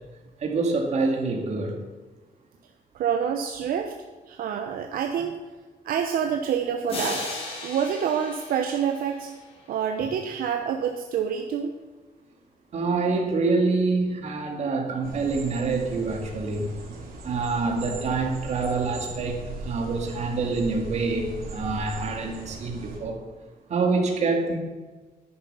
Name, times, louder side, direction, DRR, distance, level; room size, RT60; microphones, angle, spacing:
voice 1, 0.4-1.8 12.7-16.7 17.2-23.2 23.7-24.6, right 3 dB, 50° right, 2 dB, 2.3 m, -26 dB
voice 2, 2.9-3.9 4.3-5.4 5.8-7.2 7.6-9.3 9.7-11.7, right 8 dB, 75° right, 4 dB, 0.9 m, -27 dB
sound 1, 6.9-9.6, left 2 dB, 40° left, 3.3 m, -35 dB
sound 2, 15.0-23.0, right 2 dB, 90° right, 4.0 m, -39 dB
11.0 x 10.5 x 5.6 m, 1.3 s
cardioid pair, 170°, 15 cm